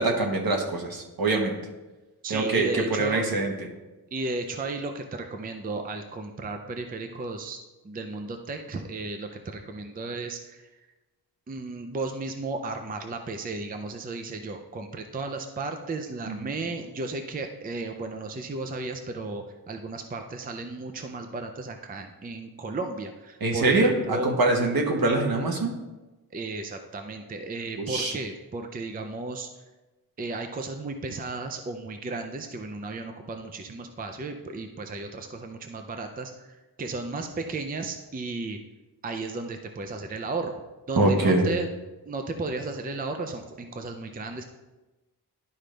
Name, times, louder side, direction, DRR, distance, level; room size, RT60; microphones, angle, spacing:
voice 1, 0.0-1.5 2.3-3.5 16.3-16.5 23.4-25.7 27.8-28.1 41.0-41.4, right 2 dB, 65° right, 1 dB, 1.3 m, -24 dB
voice 2, 2.2-3.2 4.1-7.6 7.8-10.7 11.5-24.3 26.3-29.5 30.2-38.6 39.0-40.6 40.9-41.7 42.1-44.4, right 3 dB, 25° right, 5 dB, 0.4 m, -34 dB
11.5 x 5.1 x 3.3 m, 1.1 s
wide cardioid pair, 180°, 38 cm